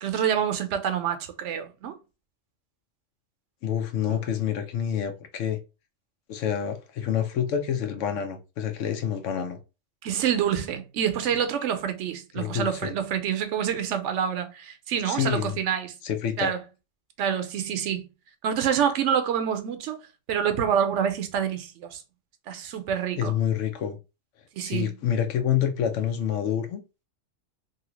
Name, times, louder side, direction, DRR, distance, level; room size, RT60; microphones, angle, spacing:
voice 1, 0.0-2.0 4.1-4.2 10.0-15.9 16.4-16.6 17.2-18.1 18.4-20.0 20.3-22.0 22.5-23.3 24.5-24.9, right 8 dB, 75° right, 0.9 m, -27 dB
voice 2, 3.6-5.6 6.3-9.6 12.3-13.0 15.1-15.6 16.0-16.5 23.2-24.0 24.6-26.8, left 9 dB, 80° left, 1.0 m, -27 dB
2.8 x 2.7 x 3.0 m
omnidirectional pair, 1.3 m